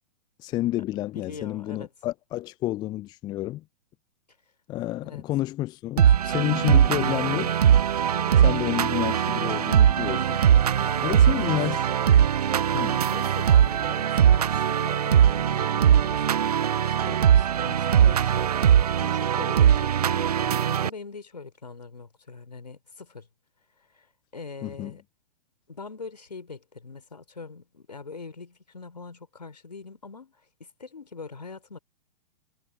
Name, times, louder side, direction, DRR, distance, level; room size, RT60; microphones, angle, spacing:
voice 1, 0.4-3.6 4.7-7.6 8.4-10.4 11.0-12.2 12.7-13.0 24.6-24.9, left 15 dB, 20° left, 0.6 m, -30 dB
voice 2, 0.9-1.9 5.0-5.2 8.1-8.4 10.5-11.2 11.7-11.8 13.1-16.2 16.8-18.5 19.0-23.3 23.9-24.1 24.3-25.0 25.7-31.8, left 4 dB, 75° left, 3.5 m, -42 dB
sound 1, 6.0-20.9, right 9 dB, 65° right, 0.5 m, -21 dB
figure-of-eight pair, 110°, 21 cm